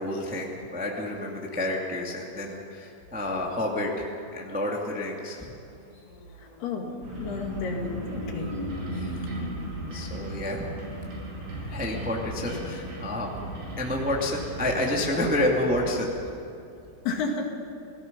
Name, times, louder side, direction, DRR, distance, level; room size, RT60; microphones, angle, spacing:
voice 1, 0.0-5.5 8.9-9.1 9.9-10.6 11.6-13.3 13.8-16.1, left 1 dB, 5° right, -1 dB, 0.9 m, -29 dB
sound 1, 5.3-14.6, left 1 dB, 15° left, 1.4 m, -41 dB
voice 2, 6.4-6.9 7.2-8.5 17.1-17.5, left 4 dB, 70° left, 2 dB, 4.1 m, -31 dB
sound 2, 7.0-16.0, right 2 dB, 90° right, 6.9 m, -37 dB
29.0 x 18.0 x 5.5 m, 2.7 s
omnidirectional pair, 4.9 m